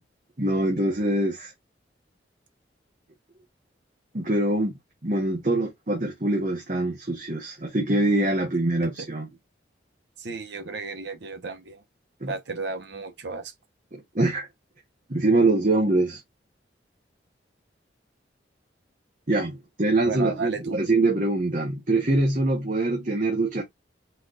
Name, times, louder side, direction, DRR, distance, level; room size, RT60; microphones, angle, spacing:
voice 1, 0.4-1.5 4.1-9.3 12.2-12.3 13.9-14.5 15.1-16.2 19.3-23.6, right 2 dB, 45° right, 1.1 m, -24 dB
voice 2, 10.2-11.8 12.2-13.5 20.1-20.8, right 4 dB, 70° right, 1.0 m, -33 dB
4.3 x 4.1 x 2.5 m
head